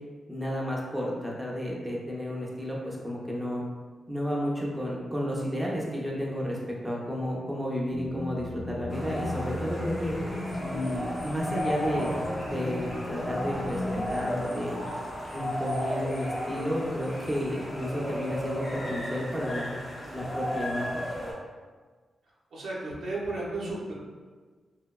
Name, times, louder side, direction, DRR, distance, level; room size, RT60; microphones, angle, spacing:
voice 1, 0.3-3.6 4.1-10.2 10.6-12.1 12.4-13.8 14.1-14.8 15.3-19.7 20.1-21.1, equal, 10° right, -4 dB, 0.5 m, -32 dB
sound 1, 7.9-14.3, left 2 dB, 70° left, 0.5 m, -36 dB
sound 2, 8.9-21.3, equal, 35° left, 0.7 m, -34 dB
voice 2, 22.5-23.9, right 2 dB, 85° right, -6 dB, 0.6 m, -33 dB
2.7 x 2.1 x 2.2 m, 1.5 s
cardioid pair, 75°, 0 cm